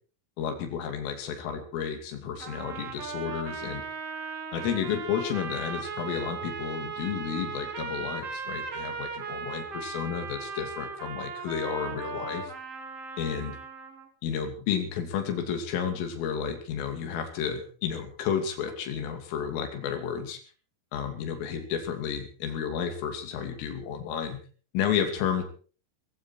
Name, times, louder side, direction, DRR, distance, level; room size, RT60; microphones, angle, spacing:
voice 1, 0.4-3.8 4.5-12.5 13.2-13.5 14.2-20.4 20.9-24.4 24.7-25.4, left 7 dB, 85° left, 5 dB, 5.2 m, -31 dB
sound 1, 2.4-14.1, right 5 dB, 40° right, 2.5 m, -37 dB
19.5 x 16.0 x 4.5 m, 0.40 s
omnidirectional pair, 5.7 m